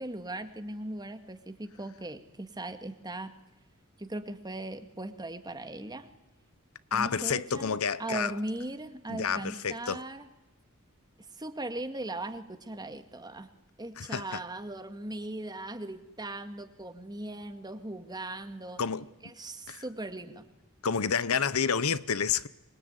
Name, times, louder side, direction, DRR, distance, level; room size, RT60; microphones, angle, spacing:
voice 1, 0.0-3.3 4.0-6.1 6.9-10.3 11.3-13.5 13.8-18.8 19.2-20.5, right 1 dB, 20° right, 2.0 m, -39 dB
voice 2, 6.9-8.3 9.1-10.0 14.0-14.4 18.8-19.1 19.7-19.8 20.8-22.5, left 6 dB, 75° left, 0.9 m, -29 dB
25.5 x 22.5 x 9.6 m
head